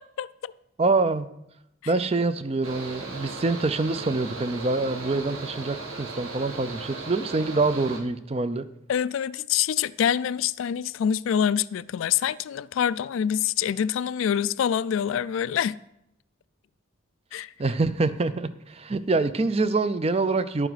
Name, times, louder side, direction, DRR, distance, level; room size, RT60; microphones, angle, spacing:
voice 1, 0.2-0.5 8.9-15.8 17.3-17.5, left 8 dB, 75° left, 0.3 m, -26 dB
voice 2, 0.8-1.3 1.9-8.7 17.6-20.7, right 3 dB, 30° right, 0.4 m, -25 dB
Mechanical fan, 2.6-8.0, right 3 dB, 90° right, 2.1 m, -37 dB
11.0 x 9.0 x 4.0 m
head